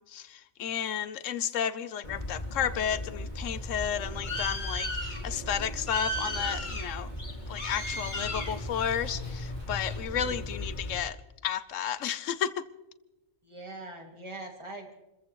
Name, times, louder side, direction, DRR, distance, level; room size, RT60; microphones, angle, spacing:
voice 1, 0.0-7.1 7.5-11.2 11.4-12.7, left 9 dB, 65° left, 1.1 m, -32 dB
Bird, 2.0-11.0, left 1 dB, 35° left, 2.2 m, -35 dB
Waves surf, 3.5-10.0, right 1 dB, 60° right, 3.9 m, -57 dB
voice 2, 13.4-15.0, right 2 dB, 20° right, 2.4 m, -43 dB
28.5 x 15.0 x 3.1 m
omnidirectional pair, 1.5 m